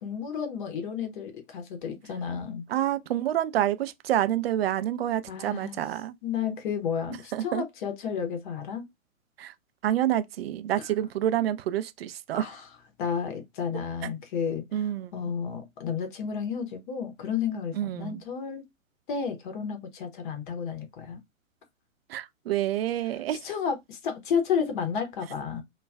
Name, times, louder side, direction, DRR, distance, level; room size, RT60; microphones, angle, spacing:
voice 1, 0.0-2.6 5.3-5.8 6.2-8.9 12.3-12.7 13.0-14.6 15.1-18.7 19.1-21.2 23.4-25.6, left 7 dB, 40° left, 0.7 m, -32 dB
voice 2, 2.7-6.1 7.3-7.6 9.4-9.5 9.8-12.6 14.7-15.3 17.8-18.2 22.1-23.5, right 12 dB, 50° right, 0.4 m, -28 dB
2.3 x 2.2 x 3.2 m
figure-of-eight pair, 115°, 41 cm